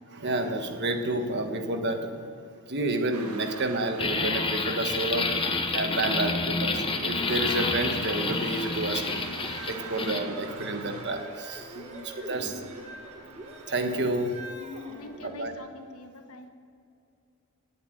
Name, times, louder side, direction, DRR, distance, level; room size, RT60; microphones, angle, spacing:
voice 1, 0.1-2.3 2.7-9.2 9.7-11.8 12.0-12.6 13.7-14.4 15.2-15.5, right 2 dB, 50° right, 5 dB, 1.4 m, -30 dB
sound 1, 3.1-14.2, right 4 dB, 80° right, 1.7 m, -45 dB
sound 2, 4.0-10.2, left 3 dB, 25° left, 1.0 m, -29 dB
voice 2, 7.1-7.4 9.7-10.1 11.7-12.1 12.3-12.7 14.0-14.1 14.6-16.5, left 2 dB, 75° left, 6 dB, 1.5 m, -45 dB
sound 3, 8.7-15.5, right 1 dB, 30° right, 1.9 m, -43 dB
18.0 x 8.3 x 9.2 m, 2.5 s
head